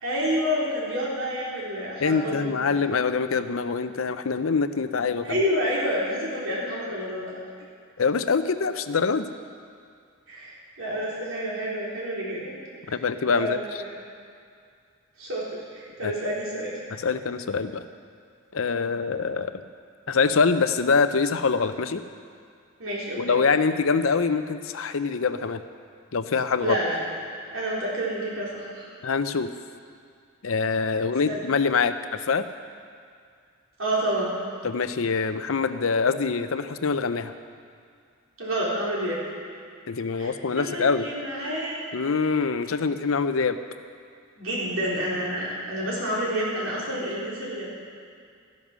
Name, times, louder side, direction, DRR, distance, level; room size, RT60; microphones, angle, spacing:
voice 1, 0.0-2.8 5.2-7.4 10.3-12.6 12.8-12.9 13.4-14.0 15.2-16.7 22.8-23.4 26.6-27.0 27.5-28.9 31.2-31.4 33.8-34.3 38.4-39.2 40.2-41.8 44.4-47.7, equal, 85° right, -6 dB, 4.2 m, -29 dB
voice 2, 2.0-5.4 8.0-9.3 12.9-13.6 16.0-16.1 17.0-17.8 18.5-19.6 20.1-22.0 23.2-25.6 26.1-26.8 29.0-29.5 30.4-32.4 34.6-37.3 39.9-41.1 41.9-43.6, left 5 dB, 80° left, 11 dB, 0.6 m, -24 dB
14.0 x 10.5 x 6.2 m, 2.2 s
head